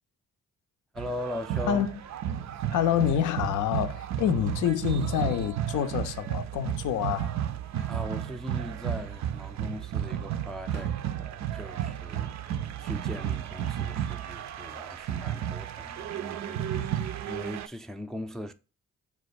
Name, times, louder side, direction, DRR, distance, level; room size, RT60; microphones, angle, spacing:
voice 1, 0.9-1.9 7.9-18.5, left 1 dB, ahead, 0.4 m, -40 dB
sound 1, 1.0-17.7, right 10 dB, 60° right, 0.5 m, -33 dB
voice 2, 2.7-7.3 7.8-7.9, left 9 dB, 70° left, 0.5 m, -27 dB
Fireworks, 10.7-13.2 13.5-14.1 15.6-16.4, right 2 dB, 80° right, 0.8 m, -54 dB
4.7 x 2.3 x 4.0 m
supercardioid pair, 45°, 32 cm